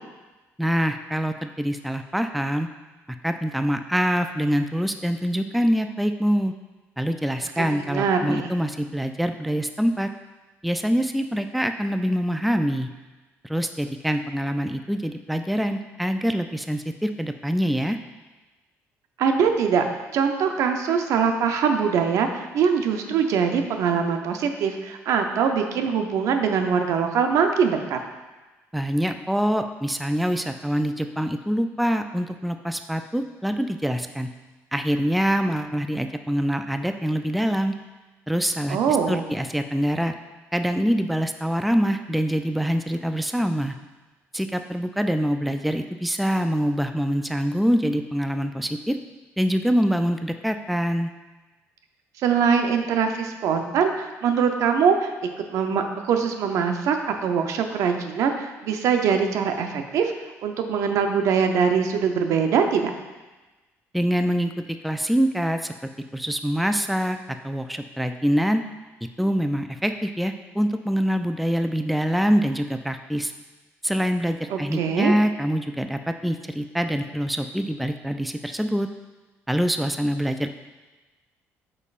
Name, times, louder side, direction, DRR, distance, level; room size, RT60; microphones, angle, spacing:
voice 1, 0.6-2.7 3.2-6.5 7.0-10.1 10.6-12.9 13.4-18.0 28.7-34.3 34.7-37.7 38.3-40.1 40.5-43.8 44.3-49.0 49.4-51.1 63.9-65.7 66.1-67.2 67.4-68.6 69.2-73.3 73.8-78.9 79.5-80.5, equal, ahead, 7 dB, 0.3 m, -25 dB
voice 2, 7.6-8.6 19.2-19.8 20.1-28.0 38.7-39.2 52.2-60.1 60.4-62.9 74.5-75.2, right 6 dB, 70° right, 5 dB, 0.6 m, -23 dB
8.1 x 5.4 x 2.5 m, 1.2 s
cardioid pair, 100°, 6 cm